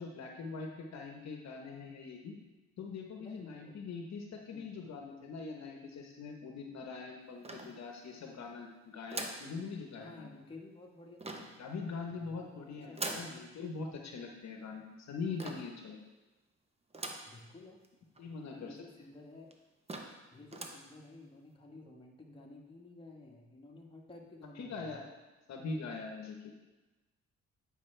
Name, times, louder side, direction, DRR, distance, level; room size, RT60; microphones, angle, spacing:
voice 1, 0.0-2.3 2.8-10.3 11.3-16.0 18.2-18.8 24.6-25.1 25.5-26.4, left 4 dB, 60° left, 2 dB, 1.0 m, -42 dB
voice 2, 3.2-3.8 4.5-5.0 10.0-11.4 12.1-13.5 17.3-17.8 18.4-19.5 20.3-25.0, left 2 dB, 15° left, -1 dB, 1.3 m, -53 dB
sound 1, 7.4-8.2 9.1-9.5 11.2-11.6 12.9-13.4 15.4-15.8 16.9-17.4 17.8-17.9 18.1-18.2 19.0-19.1 19.5-19.6 19.9-20.2 20.5-20.9, right 2 dB, 20° right, 0.8 m, -42 dB
9.2 x 5.4 x 3.3 m, 1.1 s
cardioid pair, 90°, 30 cm